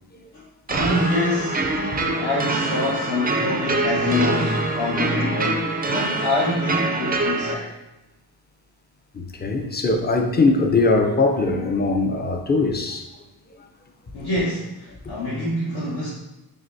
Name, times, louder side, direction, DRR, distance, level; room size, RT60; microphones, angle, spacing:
voice 1, 0.7-7.7 14.1-16.1, left 2 dB, 70° left, -10 dB, 1.5 m, -26 dB
sound 1, 0.7-7.5, right 2 dB, 25° right, 0.3 m, -24 dB
voice 2, 9.1-13.1, left 3 dB, 25° left, 4 dB, 0.5 m, -21 dB
6.5 x 2.6 x 2.7 m, 0.98 s
wide cardioid pair, 110°, 39 cm